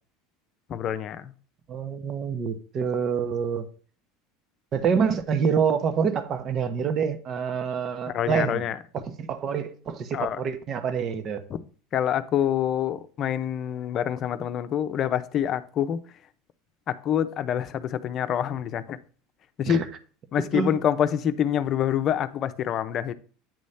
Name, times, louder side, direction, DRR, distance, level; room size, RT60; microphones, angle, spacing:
voice 1, 0.7-1.3 8.0-8.8 10.1-10.4 11.5-11.6 11.9-16.0 16.9-19.0 19.6-19.9 20.3-23.1, left 10 dB, 45° left, 0.7 m, -26 dB
voice 2, 1.7-3.7 4.7-8.6 8.9-11.4 19.7-19.9 20.5-20.8, right 6 dB, 45° right, 0.9 m, -26 dB
9.1 x 3.1 x 5.6 m
hypercardioid pair, 90°, 0 cm